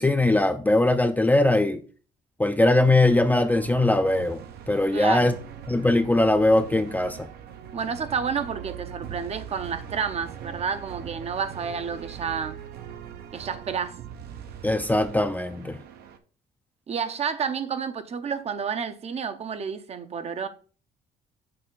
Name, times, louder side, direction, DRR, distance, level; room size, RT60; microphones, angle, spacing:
voice 1, 0.0-1.8 2.4-4.4 4.7-5.3 5.7-7.3 14.6-15.8, left 2 dB, 10° left, 0.4 m, -21 dB
sound 1, 3.0-16.2, right 9 dB, 70° right, 0.8 m, -41 dB
voice 2, 4.9-5.3 7.7-12.6 13.3-14.0 16.9-20.5, right 6 dB, 40° right, 0.7 m, -30 dB
6.8 x 4.2 x 3.8 m
cardioid pair, 110°, 17 cm